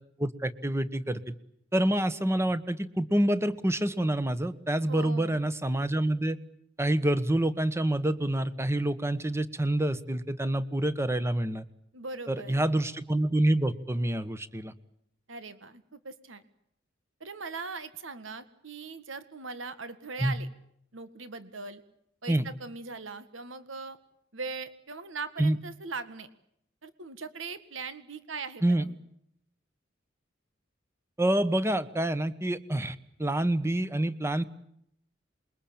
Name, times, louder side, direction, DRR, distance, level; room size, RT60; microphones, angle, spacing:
voice 1, 0.2-1.3 1.7-6.4 6.8-11.6 12.3-14.7 20.2-20.3 22.3-22.4 25.4-25.6 28.6-28.8 31.2-34.4, right 1 dB, 15° right, 13 dB, 1.3 m, -27 dB
voice 2, 4.9-5.4 11.9-12.6 15.3-16.4 17.2-20.5 20.9-21.8 22.2-24.0 24.3-26.3 26.8-28.9, right 4 dB, 85° right, 12 dB, 1.8 m, -40 dB
28.0 x 22.5 x 8.8 m, 0.72 s
head